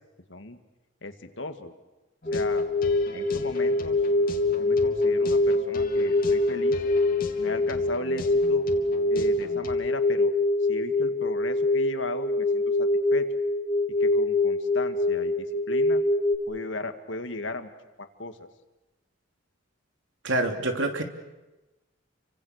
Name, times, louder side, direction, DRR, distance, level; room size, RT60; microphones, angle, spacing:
voice 1, 1.0-1.7 2.3-2.6 3.1-4.0 4.6-6.8 7.4-8.6 9.1-10.3 10.7-13.3 14.0-16.0 16.5-17.7 18.0-18.5, left 2 dB, 70° left, 7 dB, 2.1 m, -36 dB
sound 1, 2.2-9.8, left 1 dB, 50° left, 2.6 m, -41 dB
sound 2, 2.3-16.4, left 2 dB, 20° left, 1.8 m, -24 dB
voice 2, 20.2-21.0, right 2 dB, 80° right, 5 dB, 3.0 m, -26 dB
30.0 x 25.0 x 6.6 m, 1.1 s
head